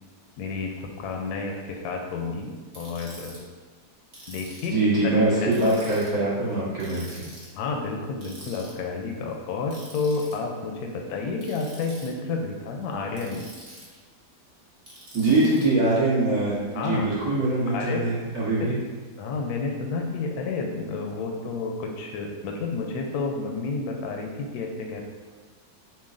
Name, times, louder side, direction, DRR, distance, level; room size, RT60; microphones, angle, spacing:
voice 1, 0.4-3.4 4.3-4.8 5.4-5.5 7.5-13.5 16.7-17.1 17.7-18.1 19.2-25.0, left 4 dB, 75° left, 2 dB, 1.0 m, -30 dB
Ratchet pawl, 2.7-3.4 4.1-4.8 5.5-6.1 6.8-7.5 8.2-8.7 9.7-10.3 11.4-12.1 13.1-14.0 14.9-15.6, right 1 dB, 30° right, 1.0 m, -45 dB
voice 2, 4.7-7.2 15.1-18.8, right 2 dB, 60° right, -9 dB, 1.8 m, -23 dB
7.0 x 2.5 x 2.5 m, 1.4 s
omnidirectional pair, 1.8 m